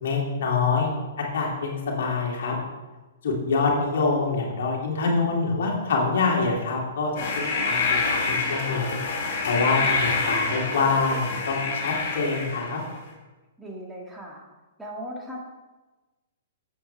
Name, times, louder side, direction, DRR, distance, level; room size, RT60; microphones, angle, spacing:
voice 1, 0.0-2.6 3.2-7.1 7.6-9.0 9.4-12.8, left 4 dB, 65° left, -1 dB, 2.6 m, -25 dB
sound 1, 7.2-12.9, left 4 dB, 45° left, 3.7 m, -27 dB
voice 2, 9.7-10.0 13.6-14.4 14.8-15.4, equal, 5° right, -3 dB, 2.0 m, -38 dB
13.0 x 8.1 x 3.4 m, 1.2 s
hypercardioid pair, 120°, 0 cm